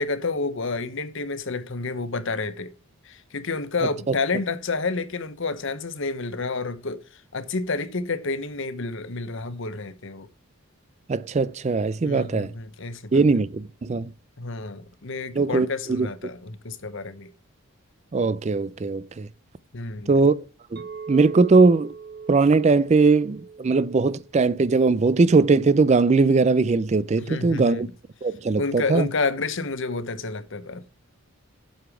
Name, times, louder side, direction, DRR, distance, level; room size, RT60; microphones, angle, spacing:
voice 1, 0.0-2.7 3.0-10.3 12.0-13.2 14.4-17.3 19.7-20.1 27.2-27.9 28.6-30.8, left 3 dB, 60° left, 0.9 m, -29 dB
voice 2, 11.1-12.5 13.1-14.1 15.4-16.1 18.1-19.3 20.1-20.3 20.7-20.8 21.1-21.9 22.3-27.9 28.2-29.1, right 4 dB, 30° right, 0.3 m, -20 dB
Chink clink, 20.8-25.0, right 5 dB, 50° right, 1.0 m, -41 dB
7.9 x 6.9 x 4.9 m
head